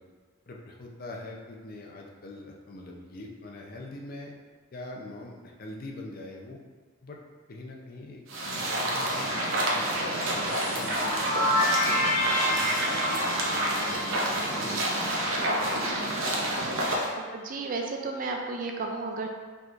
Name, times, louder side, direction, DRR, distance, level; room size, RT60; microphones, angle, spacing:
voice 1, 0.5-4.3 4.7-6.6 7.0-7.2 7.5-8.2 8.8-10.0 10.3-11.5 11.9-15.1 15.4-16.5 17.2-17.3, left 2 dB, 45° left, 0 dB, 0.5 m, -44 dB
sound 1, 8.3-17.1, right 1 dB, 75° right, 0.8 m, -28 dB
sound 2, 10.5-15.2, left 1 dB, 30° left, 1.0 m, -29 dB
voice 2, 17.2-19.3, right 3 dB, 40° right, 3 dB, 0.4 m, -33 dB
4.6 x 3.9 x 2.5 m, 1.5 s
head